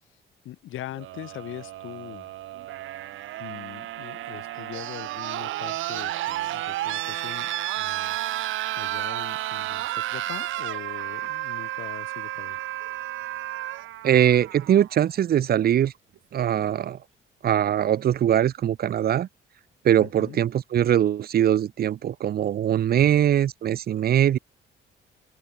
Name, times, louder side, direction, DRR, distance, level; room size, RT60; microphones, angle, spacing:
voice 1, 0.4-2.3 3.4-7.5 7.7-8.4 8.7-12.6 20.0-20.4 22.9-23.1, left 14 dB, 85° left, 4.0 m, -41 dB
sound 1, 0.9-14.9 16.2-16.3, right 15 dB, 80° right, 1.0 m, -32 dB
voice 2, 14.0-15.9 16.3-17.0 17.4-19.3 19.8-24.4, right 10 dB, 50° right, 0.6 m, -21 dB
open air
cardioid pair, 90°, 20 cm